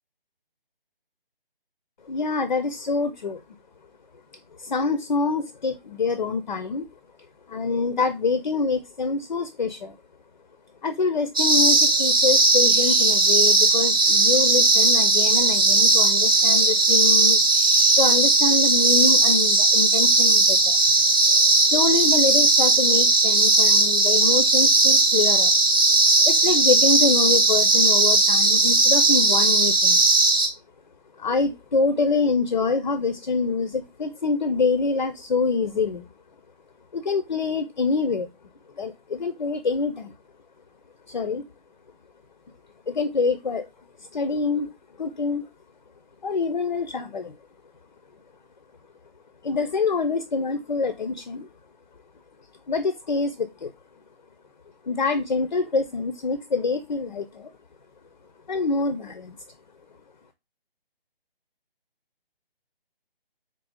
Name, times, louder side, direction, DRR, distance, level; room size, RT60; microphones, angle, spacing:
voice 1, 2.1-3.4 4.6-6.9 7.5-10.0 10.8-17.5 18.0-20.8 21.6-25.5 26.2-30.0 31.2-36.1 36.9-38.3 38.8-40.1 41.1-41.4 42.9-43.7 44.0-44.7 45.0-45.5 46.2-47.4 49.4-51.5 52.7-53.7 54.8-57.5 58.5-59.4, left 4 dB, 50° left, 11 dB, 0.5 m, -25 dB
sound 1, 11.4-30.5, right 2 dB, 25° right, 0.6 m, -18 dB
4.1 x 2.6 x 3.5 m, 0.23 s
figure-of-eight pair, 150°, 29 cm